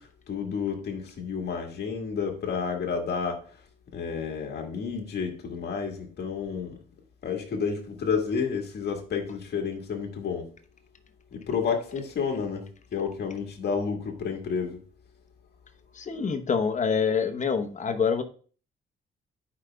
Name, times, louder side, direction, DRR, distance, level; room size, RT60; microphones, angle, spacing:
voice 1, 0.0-3.4 3.9-6.8 7.2-10.5 11.3-12.7 12.9-14.8, left 6 dB, 55° left, 1.8 m, -30 dB
voice 2, 16.0-18.2, left 6 dB, 40° left, 0.9 m, -26 dB
11.5 x 5.0 x 2.3 m
cardioid pair, 90°, 20 cm